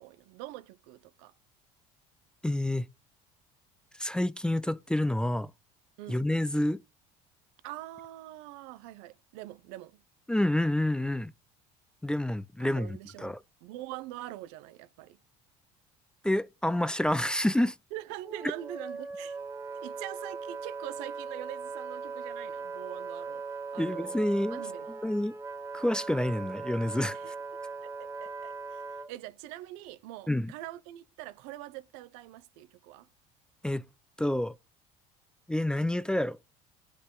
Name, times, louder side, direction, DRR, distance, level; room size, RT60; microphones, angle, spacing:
voice 1, 0.0-1.3 6.0-6.2 7.6-10.0 12.6-15.2 17.9-19.4 19.8-23.4 23.7-24.2 24.5-25.0 27.1-27.3 27.8-33.1, right 15 dB, 80° right, 0.7 m, -44 dB
voice 2, 2.4-2.9 4.0-5.5 6.1-6.8 10.3-11.3 12.0-13.4 16.2-17.8 23.8-24.6 25.0-25.4 25.7-27.2 30.3-30.5 33.6-33.8 34.2-34.6 35.5-36.4, left 1 dB, 5° left, 0.4 m, -28 dB
Wind instrument woodwind instrument, 18.2-29.1, right 4 dB, 15° right, 0.8 m, -39 dB
9.8 x 5.4 x 3.8 m
supercardioid pair, 100°, 16 cm